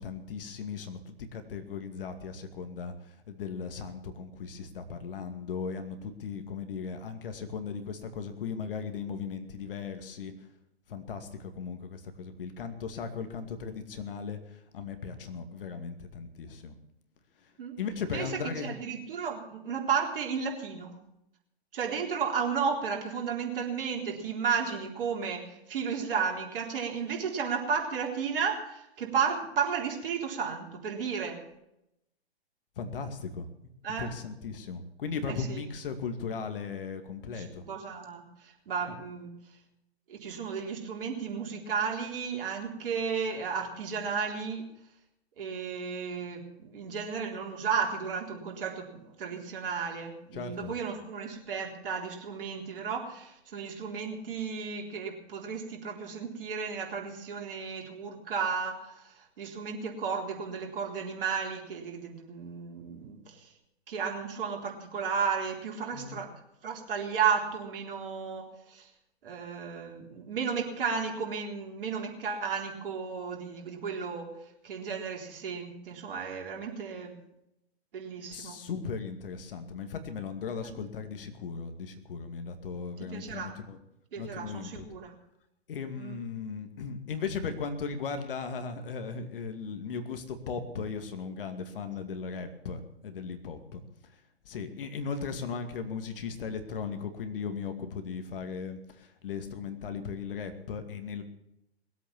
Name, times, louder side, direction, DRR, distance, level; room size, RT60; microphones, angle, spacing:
voice 1, 0.0-10.3 10.9-16.8 17.8-18.8 32.8-33.5 34.0-37.7 50.3-50.7 65.9-66.2 78.3-83.8 84.2-84.9 85.7-93.8 94.5-101.2, left 5 dB, 55° left, 8 dB, 2.3 m, -37 dB
voice 2, 18.6-20.9 21.7-31.4 33.8-34.1 35.3-35.6 37.3-39.3 40.1-44.6 45.4-63.5 63.9-66.3 66.6-68.9 69.2-74.3 74.6-77.2 77.9-78.6 80.6-80.8 83.1-83.5 84.1-85.1 86.0-86.2, right 6 dB, 55° right, 1 dB, 3.8 m, -33 dB
20.5 x 8.4 x 7.3 m, 0.82 s
figure-of-eight pair, 125°, 33 cm